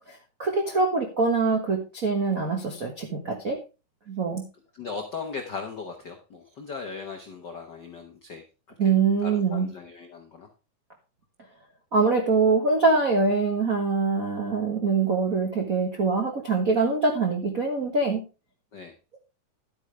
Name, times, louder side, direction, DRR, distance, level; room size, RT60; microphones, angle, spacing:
voice 1, 0.1-3.6 4.1-4.4 8.8-9.7 11.9-18.2, right 4 dB, 80° right, 2 dB, 0.7 m, -24 dB
voice 2, 4.7-8.4 8.8-8.9 9.2-10.5 18.7-18.9, left 5 dB, 85° left, 4 dB, 0.9 m, -38 dB
11.5 x 8.9 x 3.3 m, 0.31 s
omnidirectional pair, 3.9 m